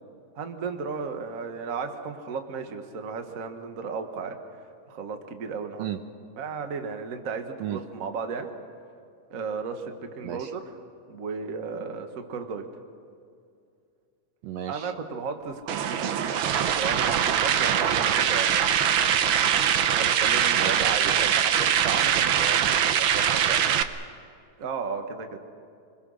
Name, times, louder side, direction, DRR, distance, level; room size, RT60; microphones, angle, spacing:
voice 1, 0.3-4.4 4.9-5.8 6.4-8.5 9.3-10.6 11.1-12.6 14.7-16.2 16.6-18.6 19.9-21.3 24.6-25.4, right 5 dB, 40° right, 6 dB, 1.2 m, -34 dB
voice 2, 14.4-14.9 20.5-23.6, right 9 dB, 70° right, 8 dB, 1.8 m, -35 dB
sound 1, 15.4-23.4, left 2 dB, 45° left, 3.8 m, -46 dB
sound 2, 15.7-23.8, right 9 dB, 90° right, 1.1 m, -23 dB
28.0 x 21.5 x 6.4 m, 2.4 s
omnidirectional pair, 3.4 m